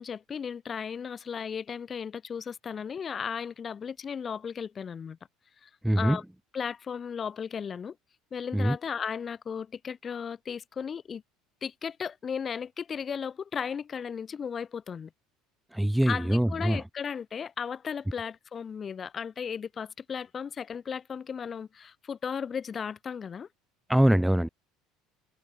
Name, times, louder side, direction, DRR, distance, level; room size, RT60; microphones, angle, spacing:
voice 1, 0.0-5.2 5.6-5.7 6.0-6.2 6.5-8.0 8.3-11.2 11.6-15.1 16.1-23.5, left 7 dB, 30° left, 2.1 m, -35 dB
voice 2, 5.8-6.2 8.5-8.8 15.7-16.8 23.9-24.5, right 1 dB, 5° right, 1.0 m, -23 dB
cardioid pair, 135°, 0 cm